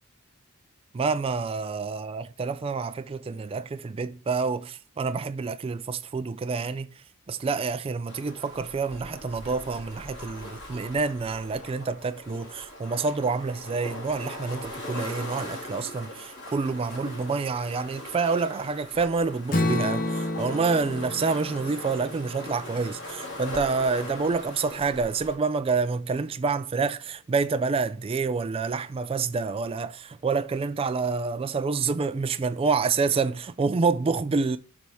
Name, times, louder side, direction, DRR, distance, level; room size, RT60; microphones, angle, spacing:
voice 1, 0.9-6.9 7.3-34.6, right 4 dB, 25° right, 0.3 m, -28 dB
sound 1, 8.1-25.4, left 1 dB, 55° left, 2.0 m, -40 dB
Strum, 19.5-23.7, left 2 dB, 40° left, 0.8 m, -31 dB
6.8 x 3.5 x 4.5 m
head